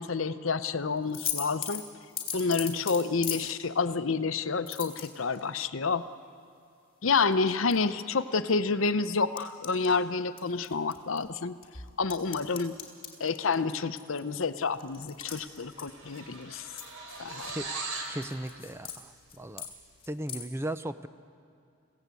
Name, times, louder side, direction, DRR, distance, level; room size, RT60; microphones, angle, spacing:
voice 1, 0.0-1.8 2.3-6.0 7.0-11.6 12.0-12.8 13.2-16.6 17.2-17.5, left 4 dB, 65° left, 12 dB, 0.7 m, -29 dB
sound 1, 1.1-3.5 4.7-5.5 7.3-7.8 8.2-8.3 9.4-9.9 10.4-11.3 11.6-16.4 16.8-17.6 17.9-19.0 19.3-19.7 20.0-20.4, left 8 dB, 25° left, 3.4 m, -38 dB
sound 2, 15.0-15.2 15.5-18.2, right 3 dB, 75° right, 3.8 m, -39 dB
voice 2, 18.1-19.7 20.1-21.1, right 1 dB, 10° right, 11 dB, 0.5 m, -36 dB
29.5 x 17.0 x 8.3 m, 2.3 s
head